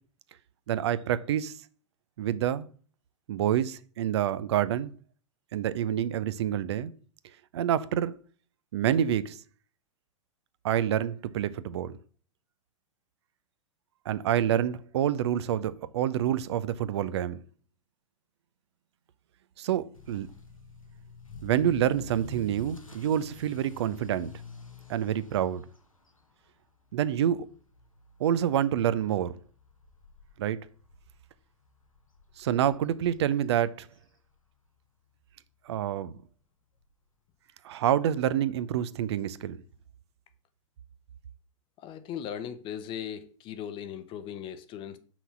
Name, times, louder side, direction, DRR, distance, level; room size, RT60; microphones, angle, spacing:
voice 1, 0.7-1.5 2.2-2.7 3.3-4.9 5.5-6.9 7.5-8.1 8.7-9.4 10.6-11.9 14.1-17.4 19.6-20.3 21.4-24.3 24.9-25.6 26.9-27.4 28.2-29.3 30.4-30.6 32.4-33.9 35.7-36.2 37.6-39.6, right 10 dB, 55° right, 0.5 m, -27 dB
Motor vehicle (road) / Accelerating revving vroom, 20.0-34.8 35.1-35.5 36.0-36.1 36.4-36.5 36.8-36.9 38.2-38.3, left 4 dB, 90° left, 1.1 m, -49 dB
voice 2, 41.8-45.0, left 9 dB, 30° left, 0.8 m, -38 dB
5.9 x 4.1 x 5.9 m
figure-of-eight pair, 100°, 17 cm